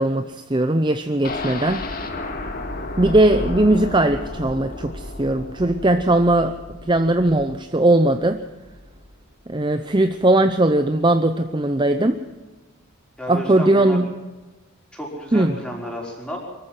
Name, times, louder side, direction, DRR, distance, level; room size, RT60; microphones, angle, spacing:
voice 1, 0.0-1.8 3.0-6.5 6.9-8.4 9.5-12.2 13.3-14.1 15.3-15.5, right 1 dB, 20° right, 9 dB, 0.7 m, -19 dB
sound 1, 1.2-9.1 9.5-9.6 9.9-10.0, left 2 dB, 45° left, 2.2 m, -33 dB
voice 2, 13.2-14.0 14.9-16.4, equal, 5° left, -2 dB, 5.3 m, -32 dB
24.0 x 14.5 x 7.7 m, 1.2 s
head